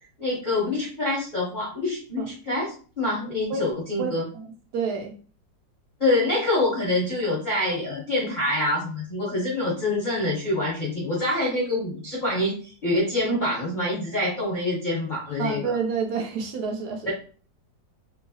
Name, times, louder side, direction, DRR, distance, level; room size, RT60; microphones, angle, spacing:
voice 1, 0.2-4.3 6.0-15.7 17.1-17.2, left 2 dB, 50° left, -5 dB, 0.5 m, -26 dB
voice 2, 4.0-4.5 4.7-5.2 15.4-17.1, right 5 dB, 70° right, 4 dB, 1.0 m, -28 dB
3.1 x 2.7 x 2.7 m, 0.40 s
omnidirectional pair, 2.0 m